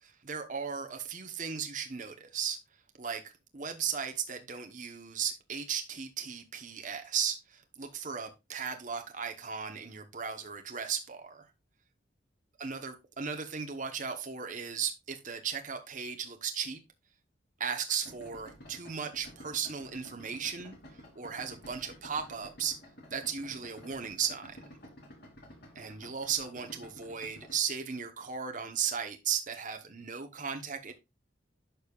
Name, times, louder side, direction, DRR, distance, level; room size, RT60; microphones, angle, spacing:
voice 1, 0.0-2.6 3.0-3.2 3.5-11.5 12.6-16.8 17.6-22.8 23.1-24.6 25.8-30.9, right 7 dB, 45° right, 0.9 m, -36 dB
Idling, 18.0-27.6, equal, 60° left, 2.9 m, -52 dB
11.0 x 5.3 x 2.4 m
head